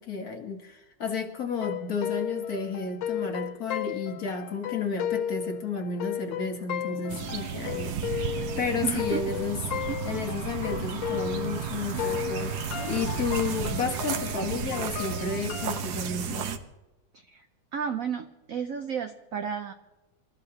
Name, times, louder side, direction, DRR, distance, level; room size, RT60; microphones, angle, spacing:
voice 1, 0.0-9.6 10.0-12.6 12.9-16.5, left 5 dB, 50° left, 5 dB, 1.6 m, -32 dB
sound 1, 1.5-11.7 12.0-15.8, left 9 dB, 70° left, 1.2 m, -34 dB
sound 2, 5.3-13.6, right 2 dB, 40° right, 3.1 m, -46 dB
sound 3, 7.1-16.6, right 7 dB, 60° right, 1.2 m, -33 dB
voice 2, 8.8-9.2 9.9-10.0 17.1-17.4 17.7-19.7, right 7 dB, 75° right, 7 dB, 0.7 m, -32 dB
27.0 x 13.0 x 2.9 m, 1.1 s
omnidirectional pair, 2.3 m